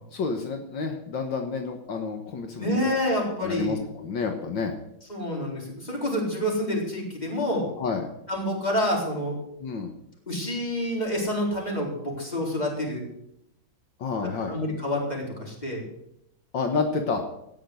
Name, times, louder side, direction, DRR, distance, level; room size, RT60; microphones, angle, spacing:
voice 1, 0.1-4.7 7.8-8.1 9.6-9.9 14.0-14.6 16.5-17.2, left 4 dB, 75° left, 4 dB, 2.0 m, -30 dB
voice 2, 2.6-3.8 5.1-7.6 8.3-9.3 10.3-13.0 14.2-15.8, left 1 dB, 20° left, -2 dB, 4.2 m, -28 dB
17.5 x 6.6 x 7.9 m, 0.79 s
omnidirectional pair, 2.1 m